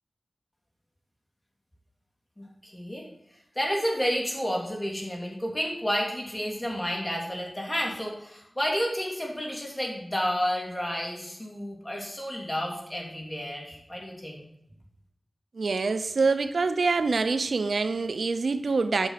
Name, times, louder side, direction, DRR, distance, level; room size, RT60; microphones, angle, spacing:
voice 1, 2.4-3.1 3.5-14.5, equal, 20° left, -1 dB, 3.1 m, -31 dB
voice 2, 15.6-19.1, right 4 dB, 85° right, 10 dB, 0.6 m, -25 dB
9.6 x 6.0 x 5.6 m, 0.79 s
cardioid pair, 50°, 0 cm